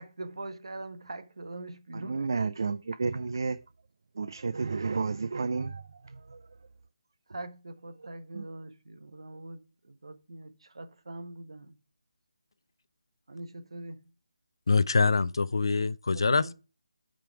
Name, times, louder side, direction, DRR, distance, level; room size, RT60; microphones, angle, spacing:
voice 1, 0.0-2.3 7.3-11.7 13.3-14.0 16.3-16.5, right 2 dB, 70° right, 1.6 m, -42 dB
voice 2, 1.9-3.6 4.1-6.6 8.0-8.1 8.3-8.5, right 4 dB, 45° right, 0.4 m, -32 dB
voice 3, 14.7-16.5, left 4 dB, 55° left, 0.5 m, -24 dB
9.0 x 5.1 x 4.7 m
figure-of-eight pair, 175°, 3 cm